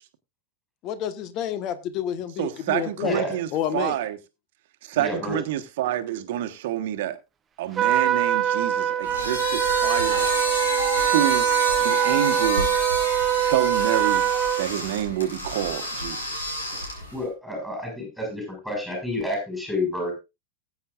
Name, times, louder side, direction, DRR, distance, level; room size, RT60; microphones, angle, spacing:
voice 1, 0.8-3.2 3.5-4.0, left 10 dB, 40° left, 1.3 m, -29 dB
voice 2, 2.4-4.2 4.8-7.2 7.6-10.3 11.0-11.5 11.8-12.7 13.4-14.2 14.6-16.5, right 12 dB, 55° right, 1.3 m, -28 dB
voice 3, 3.0-3.4 5.0-5.4 17.1-20.1, left 1 dB, 5° left, 6.3 m, -29 dB
Trumpet, 7.8-14.7, right 10 dB, 20° right, 1.1 m, -23 dB
sound 1, 9.0-17.2, left 1 dB, 70° left, 5.0 m, -30 dB
19.5 x 8.6 x 2.5 m
figure-of-eight pair, 90°, 0 cm